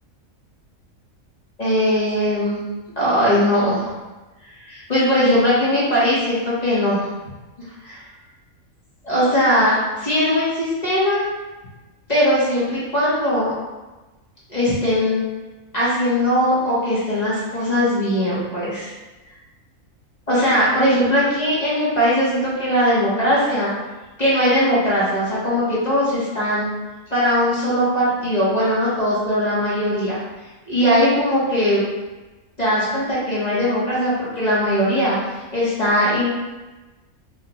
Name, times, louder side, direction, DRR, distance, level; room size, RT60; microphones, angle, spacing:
voice 1, 1.6-2.6 3.0-3.9 4.6-7.1 7.8-8.0 9.1-11.3 12.1-13.5 14.5-15.2 15.7-18.9 20.3-23.7 24.2-26.7 27.1-30.2 30.7-31.8 32.6-35.2 35.5-36.3, equal, 35° left, -9 dB, 0.9 m, -19 dB
4.7 x 2.1 x 2.9 m, 1.2 s
omnidirectional pair, 1.5 m